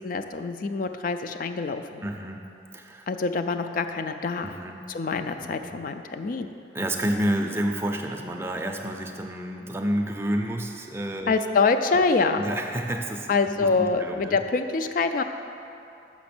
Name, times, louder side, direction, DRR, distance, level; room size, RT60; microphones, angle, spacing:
voice 1, 0.0-2.0 3.1-4.5 4.9-6.5 11.3-12.4 13.3-15.2, left 4 dB, 45° left, 8 dB, 0.3 m, -25 dB
voice 2, 2.0-3.1 4.4-4.9 5.4-5.8 6.7-11.3 12.4-14.4, right 1 dB, 15° right, 2 dB, 0.5 m, -30 dB
6.2 x 6.0 x 6.0 m, 2.7 s
head